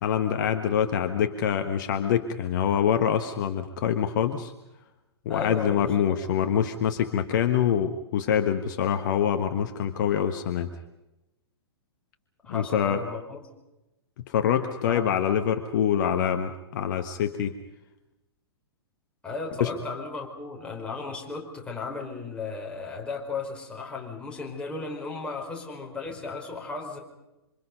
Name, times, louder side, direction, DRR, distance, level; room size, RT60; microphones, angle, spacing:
voice 1, 0.0-4.5 5.2-10.7 12.5-13.0 14.3-17.5 19.6-19.7, left 8 dB, 45° left, 7 dB, 1.4 m, -25 dB
voice 2, 5.3-6.2 12.4-13.4 14.8-15.0 19.2-27.0, left 4 dB, 10° left, -1 dB, 4.9 m, -35 dB
27.0 x 26.0 x 5.4 m, 0.97 s
figure-of-eight pair, 110°, 14 cm